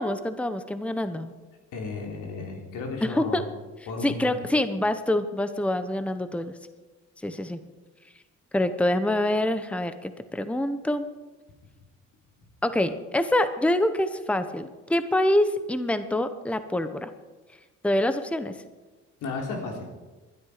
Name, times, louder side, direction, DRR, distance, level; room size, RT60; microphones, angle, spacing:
voice 1, 0.0-1.3 3.0-3.4 4.0-6.5 7.2-7.6 8.5-11.0 12.6-17.1 17.8-18.6, left 1 dB, 5° left, 11 dB, 0.9 m, -26 dB
voice 2, 1.7-3.4 3.9-4.4 19.2-19.9, left 3 dB, 85° left, 1 dB, 3.6 m, -34 dB
20.0 x 12.0 x 5.0 m, 1.2 s
cardioid pair, 90°, 30 cm